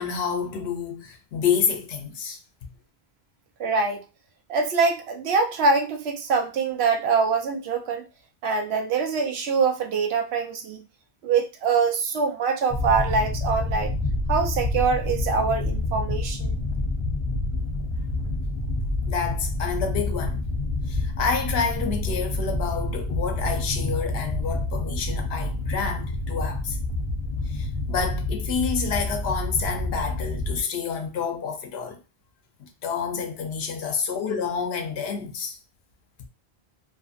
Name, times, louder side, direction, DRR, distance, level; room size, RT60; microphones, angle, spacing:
voice 1, 0.0-2.4 19.1-20.4 20.9-26.8 27.5-32.0 32.6-35.6, left 6 dB, 85° left, 0.8 m, -28 dB
voice 2, 3.6-4.0 4.5-8.0 8.4-10.8 11.2-13.9 14.3-16.5, right 5 dB, 85° right, 0.9 m, -24 dB
sound 1, 12.7-30.6, left 2 dB, 45° left, 0.4 m, -28 dB
2.6 x 2.5 x 2.4 m
omnidirectional pair, 1.0 m